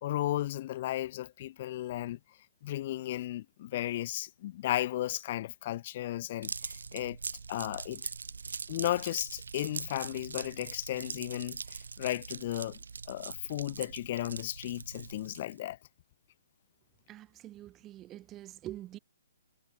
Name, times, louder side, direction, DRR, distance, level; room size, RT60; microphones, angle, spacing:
voice 1, 0.0-2.2 2.6-7.2 7.5-8.0 8.7-12.8 13.1-15.8, left 14 dB, 40° left, 1.0 m, -34 dB
sound 1, 6.4-15.6, right 5 dB, 90° right, 2.6 m, -42 dB
voice 2, 17.1-19.0, right 14 dB, 20° right, 0.6 m, -45 dB
hypercardioid pair, 155°, 0 cm